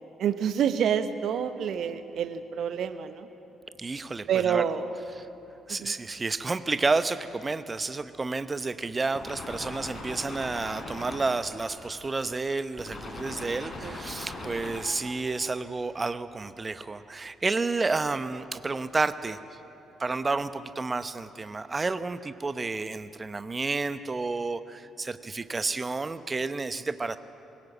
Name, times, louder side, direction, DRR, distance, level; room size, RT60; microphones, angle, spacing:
voice 1, 0.2-3.3 4.3-5.0 5.7-5.9 13.8-14.0, right 8 dB, 60° right, 11 dB, 1.0 m, -28 dB
voice 2, 3.8-4.6 5.7-19.4 20.0-27.2, right 3 dB, 30° right, 13 dB, 0.9 m, -30 dB
sound 1, 9.2-12.4 12.8-15.1, left 2 dB, 35° left, 5.6 m, -40 dB
21.5 x 18.0 x 7.4 m, 2.9 s
figure-of-eight pair, 45°, 0 cm